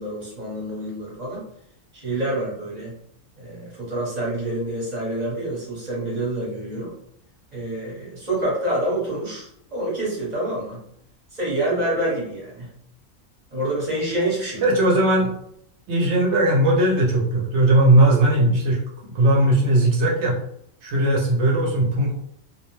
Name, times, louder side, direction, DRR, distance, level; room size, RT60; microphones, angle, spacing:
voice 1, 0.0-1.4 1.9-2.9 3.4-6.9 7.5-10.8 11.3-12.7 13.5-14.6, right 1 dB, 35° right, -5 dB, 1.0 m, -27 dB
voice 2, 14.6-15.3 15.9-18.8 19.1-20.4 20.8-22.1, right 1 dB, 60° right, -2 dB, 0.9 m, -18 dB
2.6 x 2.1 x 3.0 m, 0.70 s
omnidirectional pair, 1.4 m